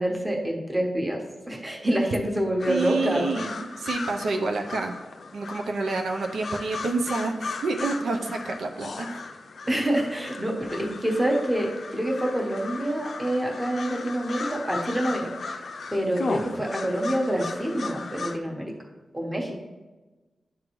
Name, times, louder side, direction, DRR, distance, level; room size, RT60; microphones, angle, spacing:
voice 1, 0.0-3.3 9.7-15.3 15.9-18.7 19.1-19.5, right 1 dB, 15° right, 0 dB, 1.1 m, -26 dB
sound 1, 2.6-18.4, left 4 dB, 60° left, 0.5 m, -36 dB
voice 2, 2.7-5.0 5.3-9.2, right 3 dB, 80° right, 2 dB, 0.6 m, -28 dB
11.0 x 3.8 x 3.1 m, 1.2 s
wide cardioid pair, 120°, 0 cm